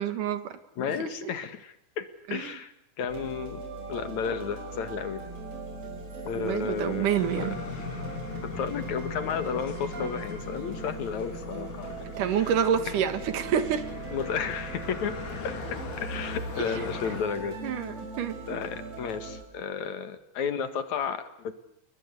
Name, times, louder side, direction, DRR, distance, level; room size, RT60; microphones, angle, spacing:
voice 1, 0.0-0.6 1.2-1.3 2.3-2.6 6.3-7.6 12.2-13.8 16.6-16.8 17.6-18.6, right 8 dB, 90° right, 11 dB, 3.3 m, -28 dB
voice 2, 0.8-2.7 3.0-3.6 3.9-5.2 6.2-7.1 7.4-7.5 8.6-12.0 12.3-12.5 14.1-15.2 15.4-15.6 16.0-17.5 18.5-21.5, left 6 dB, 65° left, 10 dB, 3.0 m, -32 dB
sound 1, 3.1-19.4, right 3 dB, 55° right, 7.3 m, -40 dB
sound 2, 7.2-17.2, left 4 dB, 85° left, 4.8 m, -39 dB
29.0 x 21.5 x 8.3 m, 0.76 s
omnidirectional pair, 3.5 m